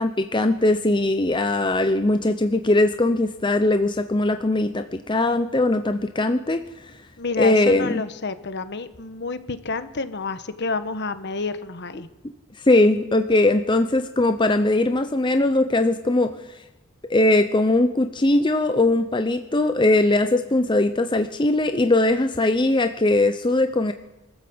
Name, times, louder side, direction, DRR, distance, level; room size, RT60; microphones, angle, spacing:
voice 1, 0.0-6.9 7.4-8.0 12.6-16.3 17.1-23.9, left 2 dB, 20° left, 8 dB, 0.7 m, -20 dB
voice 2, 7.2-12.1, left 4 dB, 50° left, 11 dB, 1.2 m, -29 dB
24.5 x 13.5 x 7.9 m, 1.0 s
head